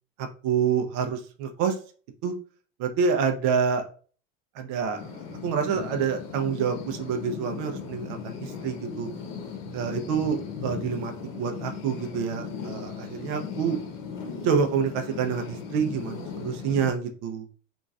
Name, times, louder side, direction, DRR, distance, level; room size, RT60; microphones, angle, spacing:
voice 1, 0.2-1.8 2.2-2.3 2.8-3.8 4.5-9.1 9.7-13.8 14.4-17.4, right 6 dB, 55° right, 6 dB, 0.7 m, -27 dB
sound 1, 5.0-16.9, left 6 dB, 65° left, 0.9 m, -37 dB
2.9 x 2.5 x 2.3 m, 0.40 s
hypercardioid pair, 90°, 38 cm